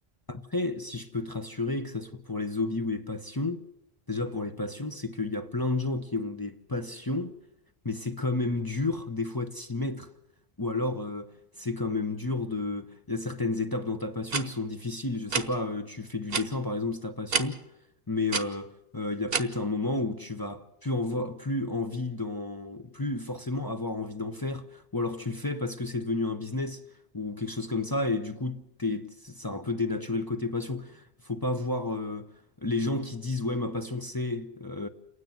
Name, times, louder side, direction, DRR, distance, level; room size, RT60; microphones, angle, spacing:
voice 1, 0.3-3.7 4.1-7.4 7.8-10.1 10.6-17.6 18.1-26.8 27.1-32.3 32.6-34.9, left 2 dB, 25° left, 0.8 m, -31 dB
sound 1, 14.3-14.4 15.3-15.5 16.3-16.5 17.3-17.5 18.3-18.4 19.3-19.4, right 5 dB, 65° right, 1.3 m, -27 dB
29.0 x 9.7 x 9.2 m
omnidirectional pair, 1.1 m